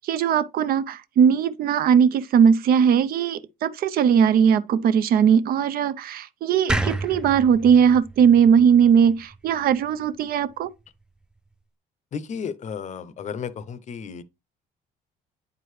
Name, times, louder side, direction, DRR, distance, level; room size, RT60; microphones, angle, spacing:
voice 1, 0.1-10.7, right 7 dB, 60° right, 0.6 m, -19 dB
sound 1, 6.7-9.9, right 2 dB, 5° right, 0.4 m, -30 dB
voice 2, 12.1-14.2, left 6 dB, 45° left, 0.6 m, -33 dB
8.7 x 4.7 x 3.2 m
cardioid pair, 110°, 17 cm